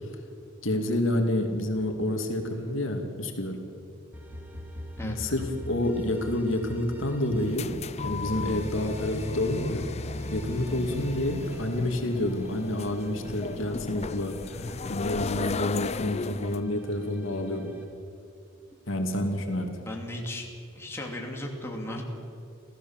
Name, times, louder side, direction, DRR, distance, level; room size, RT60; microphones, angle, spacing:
voice 1, 0.6-3.6 5.0-7.7 8.0-9.9 10.3-14.6 14.9-17.8 18.9-19.8, left 1 dB, 65° left, 3 dB, 2.5 m, -29 dB
sound 1, 4.1-7.6 8.0-13.5 14.0-17.8, equal, 10° right, 3.0 m, -42 dB
sound 2, 7.3-16.6, left 4 dB, 30° left, 0.5 m, -35 dB
voice 2, 19.9-20.5 20.7-22.0, left 1 dB, 10° left, 0 dB, 2.7 m, -36 dB
28.0 x 15.5 x 7.3 m, 2.6 s
head